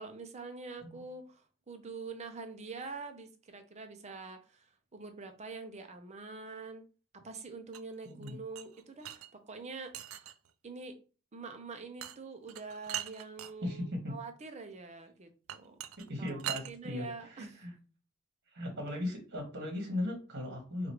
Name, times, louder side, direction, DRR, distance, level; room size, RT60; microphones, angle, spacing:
voice 1, 0.0-6.8 7.1-10.3 10.6-11.0 11.3-15.8 16.2-17.5, right 4 dB, 35° right, 6 dB, 0.6 m, -45 dB
sound 1, 7.7-9.3 9.9-10.5 12.0-12.2 12.5-13.5 15.5-16.7, right 12 dB, 75° right, 0.4 m, -41 dB
voice 2, 8.0-8.4 13.6-14.2 16.0-17.7 18.5-20.9, left 1 dB, 55° right, 2 dB, 1.4 m, -38 dB
4.9 x 2.5 x 3.0 m, 0.35 s
head